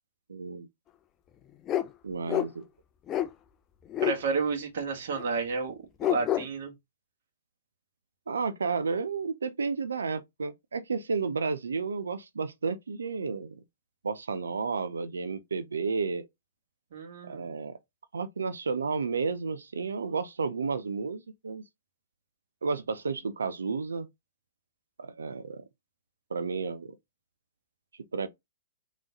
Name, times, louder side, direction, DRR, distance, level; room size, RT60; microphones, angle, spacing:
voice 1, 0.3-0.7 2.0-2.6 8.3-13.6 14.0-16.3 17.2-17.8 18.1-21.6 22.6-24.1 25.0-25.7 26.3-27.0 28.1-28.3, right 4 dB, 80° right, 0.6 m, -32 dB
sound 1, 1.7-1.9 2.3-2.5 3.1-3.3 3.9-4.2 5.2-5.3 6.0-6.5, left 12 dB, 25° left, 0.5 m, -27 dB
voice 2, 4.0-6.7 16.9-17.5, right 4 dB, 60° right, 1.4 m, -31 dB
3.8 x 3.2 x 3.8 m
hypercardioid pair, 120°, 0 cm